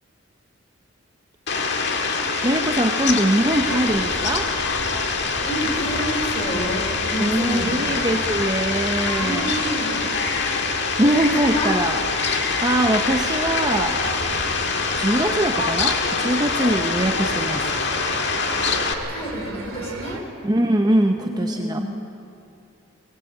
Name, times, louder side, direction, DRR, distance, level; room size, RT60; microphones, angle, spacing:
Fowl, 1.5-18.9, left 4 dB, 55° left, 1.7 m, -24 dB
voice 1, 2.4-4.5 7.2-9.5 11.0-12.0 12.6-14.3 15.0-17.7 20.4-21.8, right 1 dB, 20° right, 4 dB, 0.7 m, -22 dB
sound 1, 3.4-20.2, right 2 dB, 80° right, 2.6 m, -36 dB
voice 2, 5.5-7.8 9.2-10.0 11.0-11.7 18.6-20.3 21.2-21.8, right 1 dB, 30° left, -1 dB, 5.3 m, -29 dB
21.5 x 20.0 x 8.2 m, 2.7 s
head